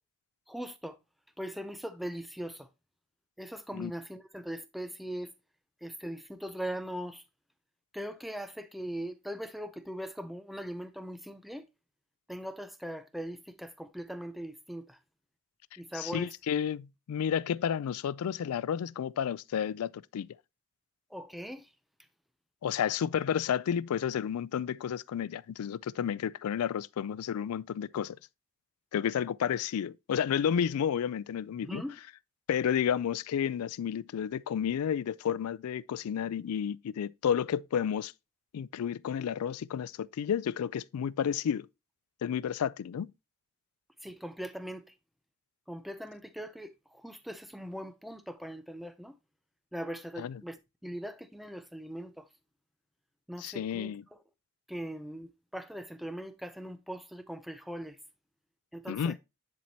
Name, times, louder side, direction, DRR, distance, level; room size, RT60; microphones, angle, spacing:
voice 1, 0.5-1.0 1.4-2.7 3.4-5.3 5.8-7.2 7.9-11.6 12.3-15.0 15.8-16.3 21.1-21.7 31.6-32.0 44.0-44.9 45.7-49.1 49.7-52.3 53.3-53.9 54.7-58.0 58.7-59.1, equal, ahead, 0.4 m, -40 dB
voice 2, 15.9-20.3 22.6-28.2 28.9-31.8 32.5-38.1 38.5-41.7 42.2-43.1 50.2-50.4 53.4-54.0 58.9-59.2, left 8 dB, 85° left, 0.3 m, -31 dB
10.5 x 4.5 x 2.7 m
head